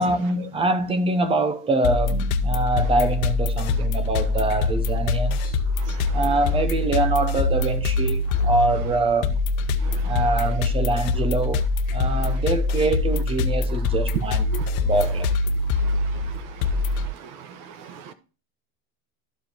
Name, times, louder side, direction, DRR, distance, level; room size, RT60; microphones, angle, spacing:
voice 1, 0.0-5.6 6.1-9.4 10.0-11.7 11.9-14.5 14.8-15.3, right 2 dB, 15° right, 0.7 m, -24 dB
sound 1, 1.8-17.1, left 3 dB, 75° left, 0.9 m, -24 dB
voice 2, 5.8-6.2 9.8-10.1 14.5-14.6 15.8-18.1, right 6 dB, 50° right, 1.3 m, -41 dB
13.0 x 4.8 x 2.9 m
supercardioid pair, 150°, 42 cm